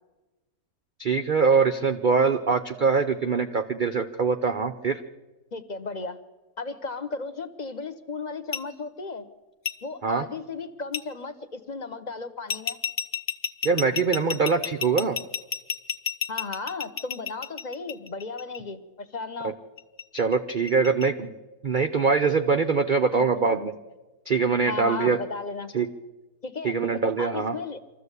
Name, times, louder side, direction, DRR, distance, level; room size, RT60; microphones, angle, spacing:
voice 1, 1.0-5.0 10.0-10.2 13.6-15.2 20.1-21.3 21.6-23.7 24.3-25.2 25.7-25.9 26.6-27.5, right 5 dB, 55° right, 7 dB, 0.5 m, -23 dB
voice 2, 5.5-6.2 6.6-9.3 9.8-12.8 16.3-19.5 23.1-23.2 24.7-25.7 26.4-26.7 27.2-27.8, left 4 dB, 30° left, 11 dB, 0.9 m, -35 dB
sound 1, 8.5-8.6 9.7-9.8 10.9-11.0 12.5-18.6 19.8-21.0, left 7 dB, 65° left, 0.4 m, -30 dB
25.0 x 14.0 x 8.2 m, 1.2 s
omnidirectional pair, 1.9 m